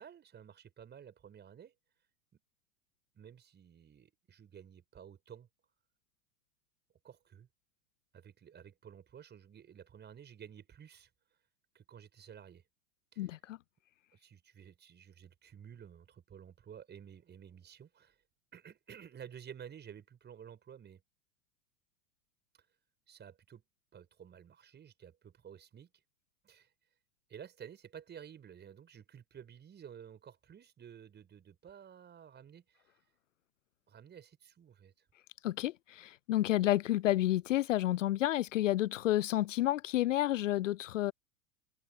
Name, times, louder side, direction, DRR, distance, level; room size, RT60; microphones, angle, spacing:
voice 1, 0.0-1.7 3.1-5.5 7.0-7.5 8.1-11.1 11.7-12.6 13.1-13.3 14.1-18.2 18.5-21.0 23.1-23.6 23.9-25.9 26.4-26.7 27.3-32.9 33.9-35.0, right 8 dB, 25° right, 6.1 m, -53 dB
voice 2, 13.2-13.6 35.4-41.1, left 14 dB, 60° left, 0.8 m, -30 dB
figure-of-eight pair, 90°, 42 cm